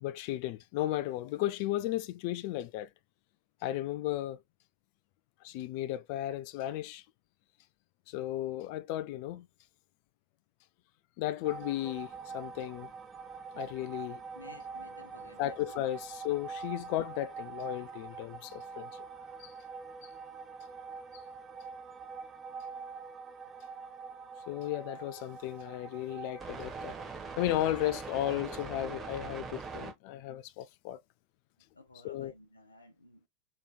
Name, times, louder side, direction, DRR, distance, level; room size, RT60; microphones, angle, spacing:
voice 1, 0.0-2.9 3.6-4.4 5.4-7.0 8.1-9.5 11.2-12.9 13.5-14.2 15.4-18.9 19.4-19.5 24.5-26.9 27.4-31.0 32.0-32.3, left 14 dB, 45° left, 0.3 m, -34 dB
sound 1, 11.4-29.9, right 5 dB, 15° right, 1.1 m, -44 dB
voice 2, 14.3-15.6 16.7-16.8 31.7-33.3, left 2 dB, 80° left, 0.8 m, -55 dB
4.7 x 3.1 x 2.2 m
figure-of-eight pair, 90°, 0 cm